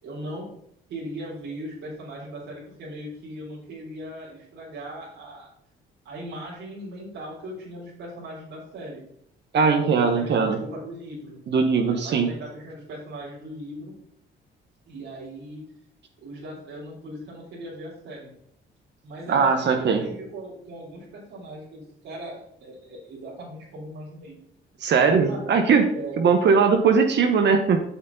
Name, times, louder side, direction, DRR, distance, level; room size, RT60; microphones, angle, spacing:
voice 1, 0.0-0.5 0.9-5.5 6.0-9.0 9.9-11.4 11.8-13.9 14.9-15.6 16.2-18.3 19.0-24.4 25.1-25.5 25.9-26.3, right 1 dB, 85° right, -9 dB, 3.6 m, -39 dB
voice 2, 9.5-10.6 11.5-12.3 19.3-20.0 24.8-27.8, right 5 dB, 60° right, 5 dB, 1.1 m, -20 dB
8.0 x 6.6 x 3.9 m, 0.72 s
cardioid pair, 90°, 20 cm